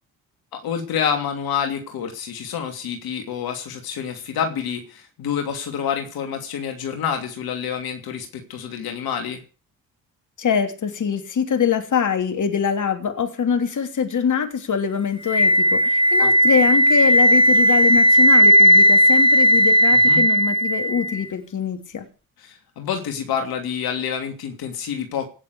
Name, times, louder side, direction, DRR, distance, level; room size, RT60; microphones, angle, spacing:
voice 1, 0.5-9.4 16.2-16.3 19.9-20.2 22.4-25.3, left 7 dB, 70° left, 5 dB, 3.0 m, -28 dB
voice 2, 10.4-22.0, left 7 dB, 50° left, 7 dB, 3.1 m, -23 dB
Wind instrument woodwind instrument, 15.3-21.2, equal, 10° left, 5.9 m, -15 dB
18.0 x 7.5 x 8.3 m, 0.36 s
hypercardioid pair, 50°, 38 cm